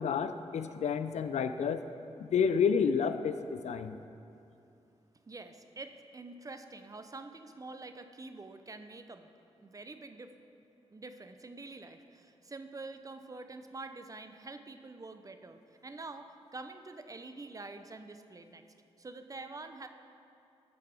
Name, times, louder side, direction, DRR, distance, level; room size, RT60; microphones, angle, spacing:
voice 1, 0.0-1.8 2.2-4.0, left 6 dB, 75° left, 10 dB, 0.4 m, -30 dB
voice 2, 5.2-9.3 9.6-10.3 10.9-18.6 19.0-19.9, right 3 dB, 30° right, 8 dB, 0.5 m, -46 dB
13.5 x 5.0 x 3.4 m, 2.6 s
cardioid pair, 65°, 12 cm